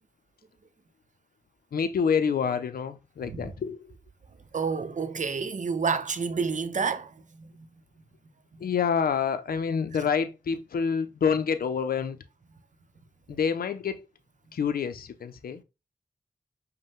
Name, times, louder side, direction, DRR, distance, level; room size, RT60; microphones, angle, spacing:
voice 1, 1.7-3.8 8.6-12.2 13.3-14.0 14.5-15.6, left 6 dB, 75° left, 0.5 m, -27 dB
voice 2, 4.5-7.1 7.5-7.7, right 5 dB, 55° right, 0.6 m, -29 dB
5.2 x 2.1 x 3.5 m
cardioid pair, 45°, 16 cm